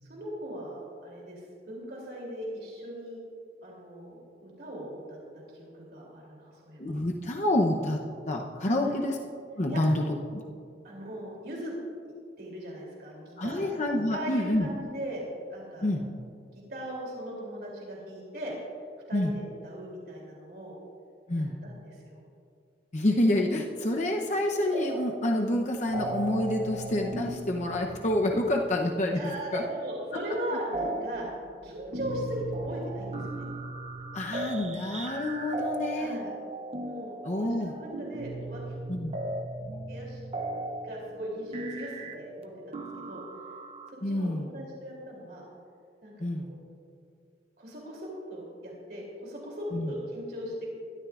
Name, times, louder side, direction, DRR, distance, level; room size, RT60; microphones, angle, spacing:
voice 1, 0.0-3.2 3.6-6.8 8.7-9.0 9.7-9.8 10.8-11.7 12.4-13.8 14.1-15.2 15.5-15.9 16.5-18.5 19.1-20.8 21.3-22.2 29.1-31.3 31.6-33.3 35.9-36.3 36.8-37.2 37.4-38.8 39.9-40.2 40.8-43.2 43.9-45.4 46.0-46.6 47.6-50.7, equal, 60° right, -3 dB, 3.1 m, -39 dB
voice 2, 6.8-9.2 9.6-10.0 10.3-10.4 13.4-14.7 15.8-16.1 19.1-19.3 21.3-21.6 22.9-29.6 34.1-36.2 37.2-37.8 38.9-39.1 44.0-44.5 46.2-46.5 49.7-49.9, left 1 dB, 40° left, 1 dB, 0.8 m, -28 dB
sound 1, 24.7-25.4 25.6-43.9, right 2 dB, 35° right, 0.7 m, -37 dB
21.0 x 13.0 x 2.5 m, 2.4 s
head